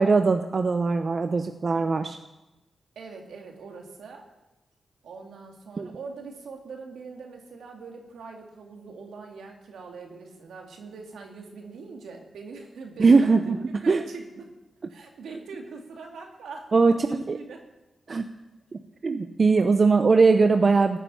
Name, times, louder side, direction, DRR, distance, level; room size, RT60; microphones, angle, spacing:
voice 1, 0.0-2.2 5.8-5.9 13.0-13.6 13.9-14.0 16.7-17.4 18.1-18.2 18.7-21.0, right 4 dB, 55° right, 7 dB, 0.8 m, -20 dB
voice 2, 3.0-4.3 5.0-14.5 14.9-17.6 19.3-19.5, right 4 dB, 80° right, 2 dB, 2.4 m, -42 dB
15.5 x 6.9 x 9.9 m, 1.0 s
supercardioid pair, 45°, 0 cm